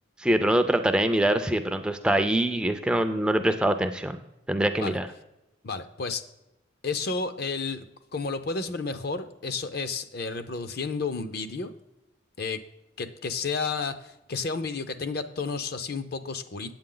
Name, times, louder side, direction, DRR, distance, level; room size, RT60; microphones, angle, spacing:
voice 1, 0.2-4.2 4.5-5.1, right 1 dB, 5° right, 7 dB, 0.3 m, -24 dB
voice 2, 5.6-6.2 6.8-7.9 8.1-11.7 12.4-12.6 13.0-16.7, left 4 dB, 50° left, 11 dB, 0.6 m, -31 dB
8.7 x 8.3 x 3.8 m, 0.91 s
head